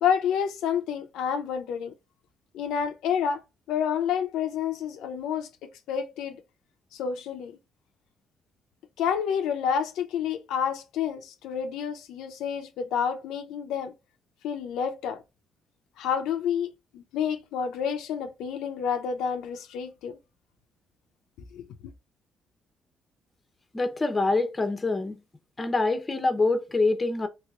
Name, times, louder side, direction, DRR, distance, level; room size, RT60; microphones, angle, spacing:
voice 1, 0.0-1.9 2.5-3.4 3.7-6.4 6.9-7.5 9.0-13.9 14.4-15.2 16.0-20.2 21.5-21.7, left 7 dB, 90° left, 0.5 m, -29 dB
voice 2, 23.7-25.2 25.6-27.3, left 3 dB, 25° left, 0.7 m, -25 dB
3.2 x 2.9 x 2.4 m
cardioid pair, 90°, 0 cm